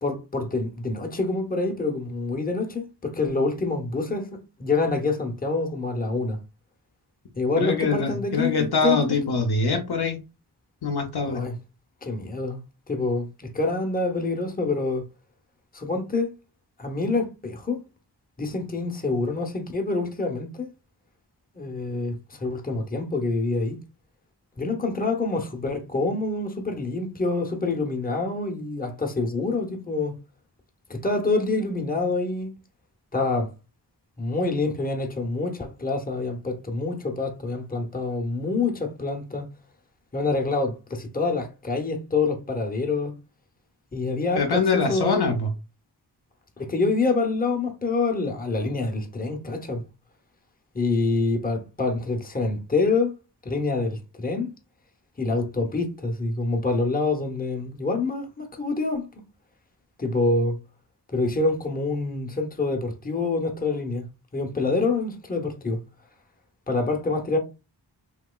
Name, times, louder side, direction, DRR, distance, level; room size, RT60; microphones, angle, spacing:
voice 1, 0.0-6.4 7.4-9.2 11.2-11.5 12.0-12.6 12.9-15.1 15.7-16.3 16.8-17.8 18.4-20.7 21.6-23.8 24.6-30.1 30.9-32.5 33.1-33.5 34.2-39.5 40.1-43.1 43.9-45.2 46.6-49.8 50.7-53.1 53.4-54.5 55.2-59.1 60.0-60.6 61.1-65.8 66.7-67.4, left 3 dB, 20° left, 0.7 m, -26 dB
voice 2, 7.6-10.2 10.8-11.4 44.4-45.5, left 4 dB, 65° left, 0.7 m, -24 dB
3.0 x 2.8 x 2.2 m
wide cardioid pair, 80°, 43 cm